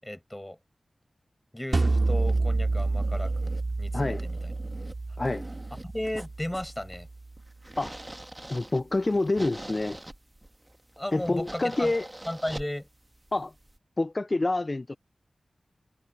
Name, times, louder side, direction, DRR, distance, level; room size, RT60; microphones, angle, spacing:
voice 1, 0.0-0.6 1.5-4.4 5.8-7.1 11.0-11.9 12.3-12.9, left 1 dB, 15° left, 6.4 m, -35 dB
sound 1, 1.7-13.8, right 1 dB, 20° right, 1.7 m, -45 dB
sound 2, 1.7-6.8, right 3 dB, 50° right, 2.3 m, -28 dB
voice 2, 3.9-4.2 5.2-5.4 7.8-7.9 8.5-10.0 11.1-12.1 13.3-13.5 14.0-15.0, left 2 dB, 35° left, 0.4 m, -27 dB
wide cardioid pair, 65°, 0 cm